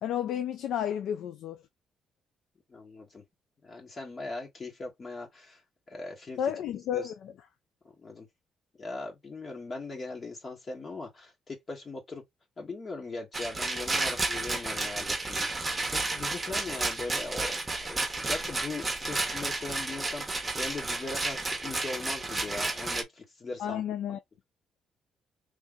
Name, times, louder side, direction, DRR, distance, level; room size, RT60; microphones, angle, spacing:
voice 1, 0.0-1.6 6.4-7.3 23.6-24.2, left 9 dB, 80° left, 0.5 m, -32 dB
voice 2, 2.7-3.2 3.6-5.6 5.9-6.4 6.9-7.1 8.0-8.3 8.8-12.2 12.6-23.8, left 3 dB, 40° left, 1.7 m, -40 dB
Rattle, 13.3-23.0, right 2 dB, 20° right, 1.1 m, -32 dB
3.3 x 2.7 x 3.8 m
cardioid pair, 90°, 0 cm